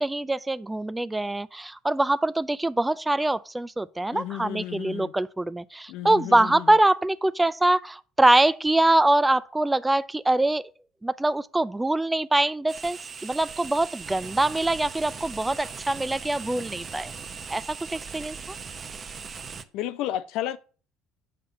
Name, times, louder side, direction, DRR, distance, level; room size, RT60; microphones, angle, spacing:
voice 1, 0.0-10.6 11.0-17.1 17.5-18.6, right 2 dB, 10° right, 0.5 m, -24 dB
voice 2, 4.1-5.1 5.9-6.8 19.7-20.6, left 12 dB, 70° left, 0.6 m, -32 dB
sound 1, 12.7-19.6, right 5 dB, 40° right, 0.9 m, -39 dB
7.0 x 5.2 x 6.6 m
supercardioid pair, 75°, 0 cm